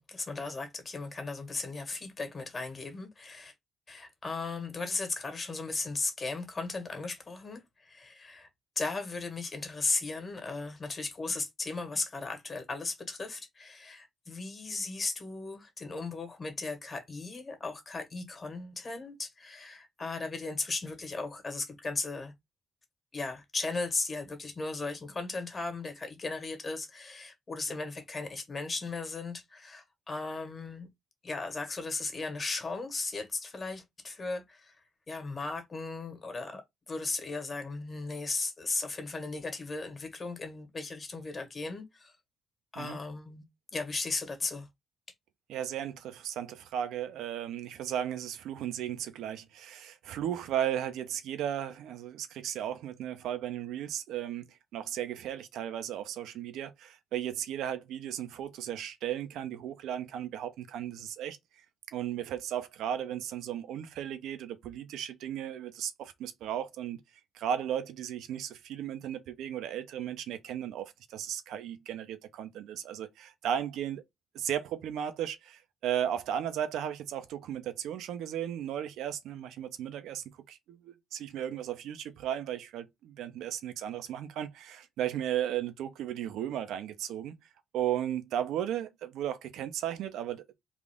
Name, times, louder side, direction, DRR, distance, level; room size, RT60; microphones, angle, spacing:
voice 1, 0.0-3.5 3.9-8.5 8.7-22.3 23.1-30.9 31.2-34.7 35.1-36.6 36.9-42.1 42.7-43.5 43.7-44.7, left 3 dB, 35° left, 1.5 m, -36 dB
voice 2, 45.5-61.4 61.9-67.0 67.3-74.0 74.3-87.3 87.7-90.4, right 10 dB, 85° right, 0.5 m, -35 dB
3.5 x 2.5 x 3.6 m
cardioid pair, 90°, 0 cm